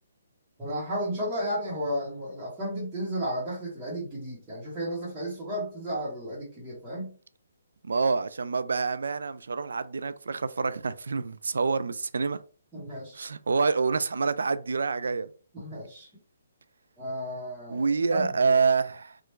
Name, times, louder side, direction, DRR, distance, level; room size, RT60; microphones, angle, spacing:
voice 1, 0.6-7.1 12.7-13.2 15.5-16.1 17.0-18.6, equal, 10° right, 1.1 m, -33 dB
voice 2, 7.8-12.4 13.1-15.3 17.7-19.2, right 4 dB, 90° right, 0.3 m, -27 dB
3.0 x 2.4 x 3.2 m
hypercardioid pair, 165°, 0 cm